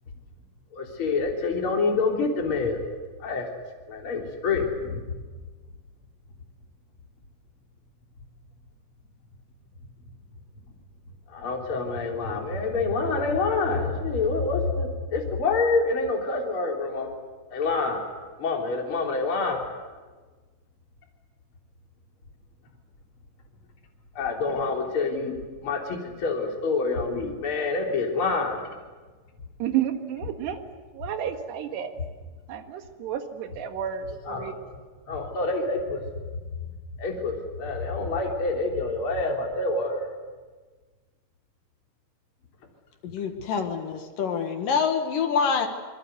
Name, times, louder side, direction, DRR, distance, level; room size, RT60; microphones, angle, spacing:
voice 1, 0.7-2.9 3.2-3.5 3.9-5.2 11.3-17.1 17.5-18.1 18.4-19.7 24.2-28.8 34.3-34.6 35.1-36.0 37.0-40.1, left 3 dB, 30° left, 0 dB, 3.7 m, -27 dB
voice 2, 29.6-31.9 32.5-34.6, right 10 dB, 65° right, 6 dB, 3.5 m, -31 dB
voice 3, 43.0-45.7, left 6 dB, 60° left, 5 dB, 2.5 m, -26 dB
26.5 x 22.0 x 8.1 m, 1.3 s
omnidirectional pair, 5.7 m